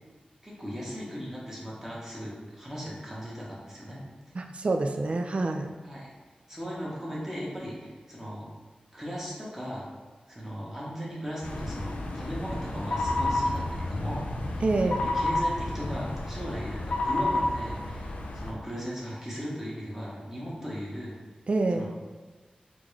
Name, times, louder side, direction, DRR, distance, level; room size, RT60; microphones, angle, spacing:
voice 1, 0.4-4.0 5.8-6.1 6.5-8.5 8.9-9.9 10.3-21.2 21.7-21.9, equal, 15° right, -6 dB, 1.0 m, -37 dB
voice 2, 4.3-5.7 14.6-15.0 21.5-21.9, right 2 dB, 50° right, 5 dB, 0.3 m, -27 dB
sound 1, 11.4-18.5, left 2 dB, 70° left, 0.4 m, -30 dB
3.7 x 2.3 x 3.1 m, 1.4 s
wide cardioid pair, 80°, 3 cm